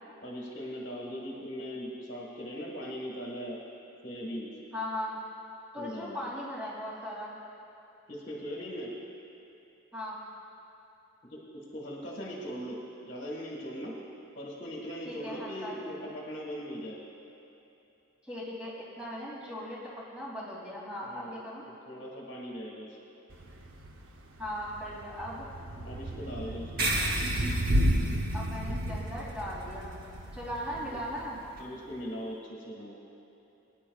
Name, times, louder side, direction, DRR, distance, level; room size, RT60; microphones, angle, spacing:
voice 1, 0.2-3.6 4.0-4.5 5.8-6.3 8.1-8.9 11.3-14.0 14.4-17.0 21.0-21.4 21.9-22.9 25.8-27.1 30.8-31.0 31.6-33.0, equal, 45° left, -4 dB, 1.6 m, -40 dB
voice 2, 4.7-5.2 5.7-7.3 9.9-10.2 15.0-15.9 18.2-21.6 24.4-25.5 28.3-29.9 30.3-31.4, equal, 5° right, -8 dB, 2.6 m, -38 dB
Thunder / Rain, 23.3-31.6, equal, 65° right, 0.8 m, -33 dB
sound 1, 26.8-31.6, right 1 dB, 45° right, 1.0 m, -35 dB
20.5 x 10.0 x 2.4 m, 2.9 s
head